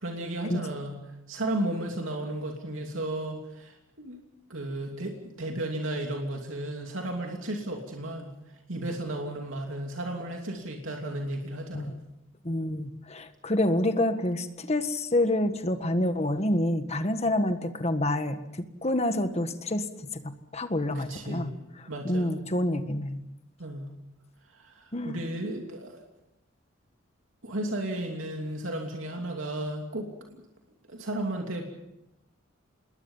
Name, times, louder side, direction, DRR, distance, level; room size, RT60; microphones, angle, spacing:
voice 1, 0.0-1.0 1.3-4.2 4.5-8.3 8.7-11.9 20.9-21.6 21.9-22.4 23.6-23.9 24.5-26.0 27.4-30.4 30.9-31.7, right 1 dB, 85° right, 1 dB, 2.9 m, -34 dB
voice 2, 12.4-18.4 18.8-19.9 20.1-21.5 22.0-23.2 24.9-25.2, left 1 dB, 35° left, 8 dB, 1.5 m, -27 dB
27.0 x 21.0 x 5.6 m, 0.86 s
head